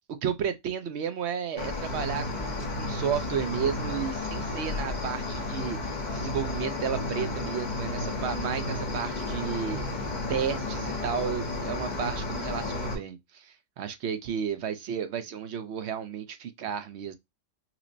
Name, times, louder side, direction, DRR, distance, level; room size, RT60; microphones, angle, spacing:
voice 1, 0.2-9.8 10.3-17.1, right 8 dB, 65° right, 0.8 m, -33 dB
Cricket, 1.6-13.0, left 2 dB, 40° left, 0.9 m, -32 dB
5.7 x 2.1 x 2.5 m
omnidirectional pair, 1.3 m